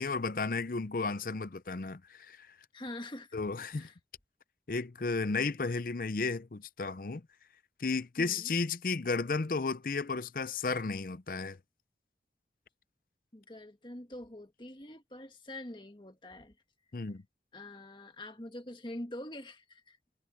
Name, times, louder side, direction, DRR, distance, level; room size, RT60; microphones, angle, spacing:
voice 1, 0.0-2.5 3.3-3.9 4.7-7.2 7.8-11.6 16.9-17.2, left 4 dB, 50° left, 0.6 m, -33 dB
voice 2, 2.7-3.4 3.7-3.9 8.2-8.5 13.3-16.5 17.5-20.0, left 1 dB, 25° left, 1.6 m, -45 dB
head